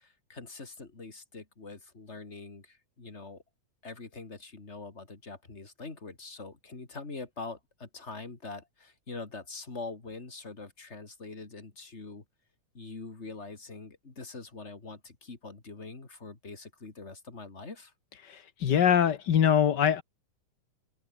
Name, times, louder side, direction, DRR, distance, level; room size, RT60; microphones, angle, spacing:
voice 1, 0.0-3.4 3.8-12.2 12.7-17.9, left 3 dB, 20° left, 3.0 m, -44 dB
voice 2, 18.2-20.0, left 9 dB, 60° left, 1.1 m, -23 dB
omnidirectional pair, 3.6 m